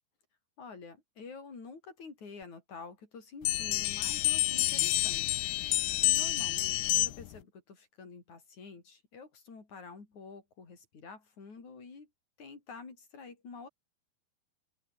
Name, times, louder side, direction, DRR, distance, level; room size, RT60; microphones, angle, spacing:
voice 1, 0.6-5.4 6.0-12.1 12.4-13.7, left 4 dB, 45° left, 6.7 m, -48 dB
sound 1, 3.4-7.4, left 18 dB, 80° left, 2.8 m, -29 dB
open air
omnidirectional pair, 4.7 m